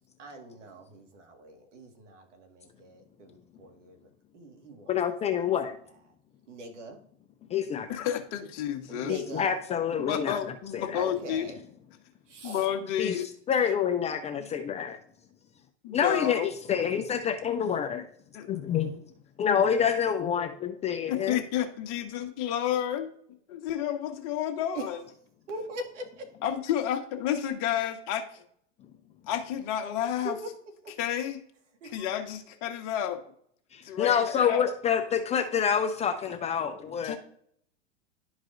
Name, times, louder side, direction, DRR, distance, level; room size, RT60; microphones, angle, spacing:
voice 1, 0.2-4.9 5.3-5.8 6.5-7.0 8.9-9.5 10.9-11.6 12.3-12.7 24.7-24.9 25.5-26.3 30.2-30.5 30.8-30.9 31.8-32.1, right 2 dB, 80° right, 4 dB, 1.9 m, -42 dB
voice 2, 4.9-5.7 7.5-7.9 9.1-10.4 10.7-11.0 13.0-13.1 13.5-15.0 15.9-18.1 18.5-19.0 19.4-21.4 33.7-37.2, left 8 dB, 20° left, 7 dB, 0.4 m, -27 dB
voice 3, 7.9-9.1 9.9-11.4 12.4-13.2 15.8-16.5 18.3-18.6 21.1-23.1 23.5-25.0 26.4-28.2 29.3-30.4 31.0-31.4 31.9-33.2 33.8-34.6 37.0-37.2, left 10 dB, 45° left, 4 dB, 1.3 m, -30 dB
11.5 x 4.7 x 2.6 m, 0.63 s
hypercardioid pair, 115°, 36 cm